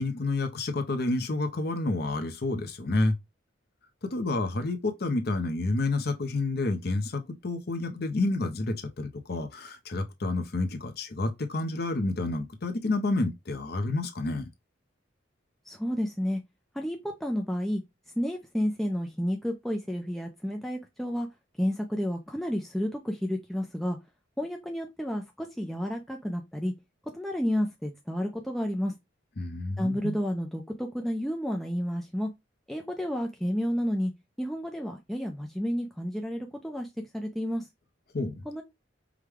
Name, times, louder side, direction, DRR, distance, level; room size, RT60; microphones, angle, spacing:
voice 1, 0.0-3.1 4.0-14.5 29.4-30.2 38.1-38.4, left 2 dB, 55° left, 0.7 m, -29 dB
voice 2, 15.7-16.4 16.7-17.8 18.2-21.3 21.6-24.0 24.4-26.7 27.1-28.9 29.8-32.3 32.7-34.1 34.4-36.9 37.1-37.7 38.4-38.6, equal, ahead, 0.4 m, -31 dB
4.8 x 2.2 x 3.5 m
head